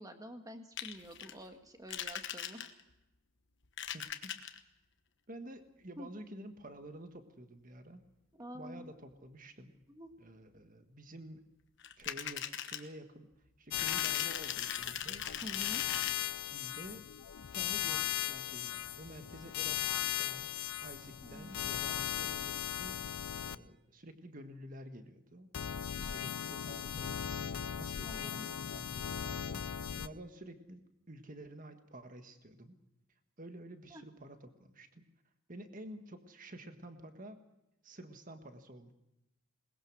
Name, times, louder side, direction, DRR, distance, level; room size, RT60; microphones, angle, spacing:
voice 1, 0.0-2.7 6.0-6.1 8.3-8.9 9.9-10.1 15.4-15.8 21.2-21.7 28.0-28.5 33.9-34.0, equal, 15° right, 6 dB, 1.7 m, -48 dB
sound 1, 0.8-1.3 1.9-2.9 3.6-4.6 11.8-12.9 13.8-16.1, left 10 dB, 55° left, 1.2 m, -40 dB
voice 2, 3.9-4.4 5.3-8.0 8.5-9.7 10.2-11.5 12.0-13.3 13.6-15.3 15.8-16.2 16.5-17.1 17.5-23.0 23.3-25.5 26.0-32.8 33.4-35.1 35.5-37.4 37.8-38.9, right 1 dB, 35° right, 8 dB, 1.6 m, -50 dB
sound 2, 13.7-23.6 25.5-30.1, left 11 dB, 85° left, 0.6 m, -37 dB
21.5 x 20.5 x 6.3 m, 0.91 s
head